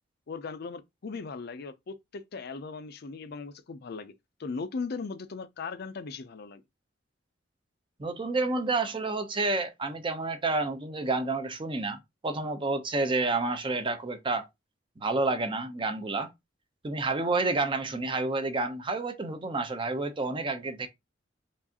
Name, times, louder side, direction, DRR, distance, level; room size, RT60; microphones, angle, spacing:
voice 1, 0.3-4.1 4.4-6.6, left 4 dB, 55° left, 0.5 m, -38 dB
voice 2, 8.0-14.5 15.0-16.3 16.8-20.9, right 3 dB, 25° right, 0.6 m, -29 dB
4.6 x 2.5 x 2.8 m
head